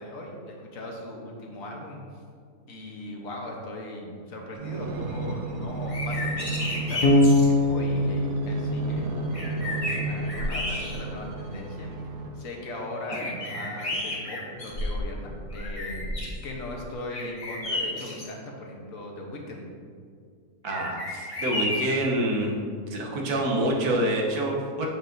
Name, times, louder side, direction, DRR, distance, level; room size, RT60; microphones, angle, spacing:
voice 1, 0.0-2.0 2.7-11.9 12.3-16.0 16.4-19.6, left 1 dB, 65° left, 0 dB, 1.3 m, -38 dB
sound 1, 4.6-12.5 13.1-14.4 15.0-15.1, right 3 dB, 65° right, 0.8 m, -33 dB
sound 2, 5.8-7.5 8.9-9.0 9.3-11.3 11.8-11.9 13.1-15.1 15.5-16.4 17.1-18.3 20.6-22.1, left 1 dB, 25° left, 1.0 m, -32 dB
Bass guitar, 7.0-10.0, left 1 dB, 90° left, 1.3 m, -23 dB
voice 2, 20.6-22.6 22.9-24.9, right 1 dB, 90° right, 0 dB, 1.4 m, -26 dB
7.9 x 5.5 x 2.6 m, 2.1 s
omnidirectional pair, 1.6 m